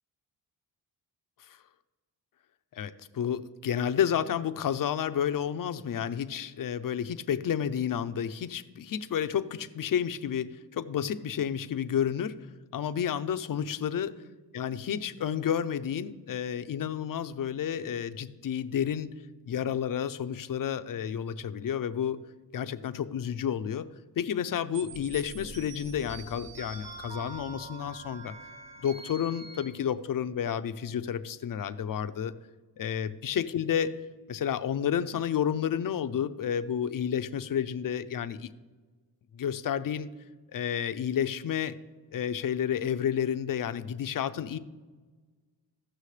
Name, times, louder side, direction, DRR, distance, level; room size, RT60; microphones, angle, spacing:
voice 1, 2.7-12.4 12.7-14.2 14.5-19.1 19.5-22.2 22.5-23.9 24.2-28.3 28.8-32.3 32.8-34.0 34.3-38.5 39.3-40.1 40.5-41.8 42.1-44.6, left 8 dB, 50° left, 11 dB, 0.6 m, -31 dB
sound 1, 24.7-29.7, right 2 dB, 80° right, 3.1 m, -44 dB
15.5 x 6.3 x 3.3 m, 1.3 s
cardioid pair, 65°, 43 cm